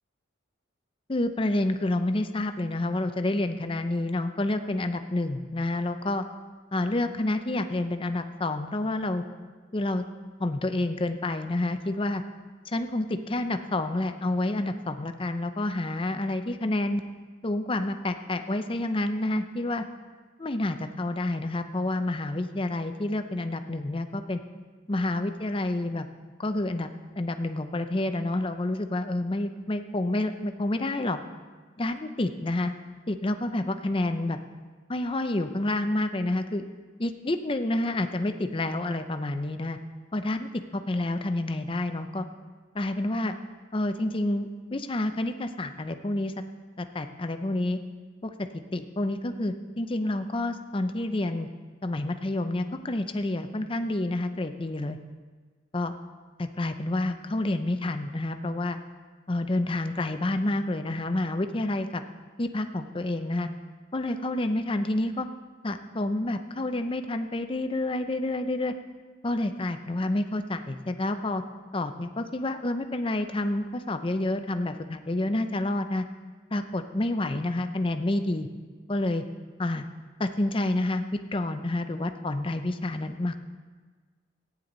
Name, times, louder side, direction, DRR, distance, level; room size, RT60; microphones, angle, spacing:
voice 1, 1.1-6.2 6.7-9.2 9.7-10.0 10.4-12.2 12.7-17.0 17.4-19.8 20.4-24.4 24.9-26.1 26.4-26.9 27.2-31.2 31.8-32.7 33.1-34.4 34.9-36.7 37.0-39.8 40.1-42.3 42.7-43.4 43.7-46.3 46.8-47.8 48.2-48.3 48.7-51.5 51.8-55.0 55.7-56.0 56.4-58.8 59.3-62.0 62.4-63.5 63.9-65.3 65.6-68.7 69.2-71.4 71.7-76.0 76.5-78.5 78.9-79.2 79.6-79.8 80.2-83.4, left 1 dB, 25° left, 8 dB, 0.6 m, -29 dB
15.5 x 9.7 x 3.9 m, 1.4 s
head